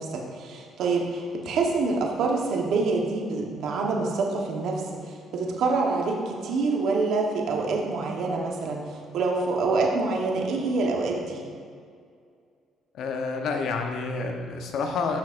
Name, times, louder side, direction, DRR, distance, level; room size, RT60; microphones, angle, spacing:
voice 1, 0.0-11.4, right 3 dB, 70° right, 0 dB, 1.1 m, -26 dB
voice 2, 12.9-15.2, left 4 dB, 70° left, 4 dB, 0.9 m, -29 dB
9.9 x 6.4 x 2.5 m, 2.2 s
supercardioid pair, 75°, 0 cm